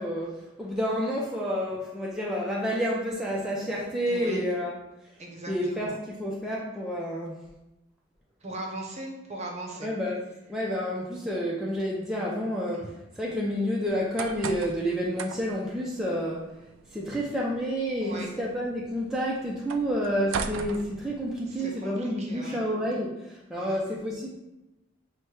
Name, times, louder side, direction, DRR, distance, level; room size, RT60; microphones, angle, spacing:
voice 1, 0.0-4.7 5.5-7.4 9.8-10.2 10.5-16.5 16.9-24.3, equal, 5° right, -5 dB, 0.4 m, -29 dB
voice 2, 4.1-4.4 5.2-5.9 8.4-9.9 18.0-18.3 21.5-22.6 23.6-23.8, right 2 dB, 35° right, 1 dB, 0.7 m, -39 dB
sound 1, 13.9-21.6, right 6 dB, 85° right, 0.3 m, -40 dB
5.9 x 2.1 x 3.2 m, 0.96 s
head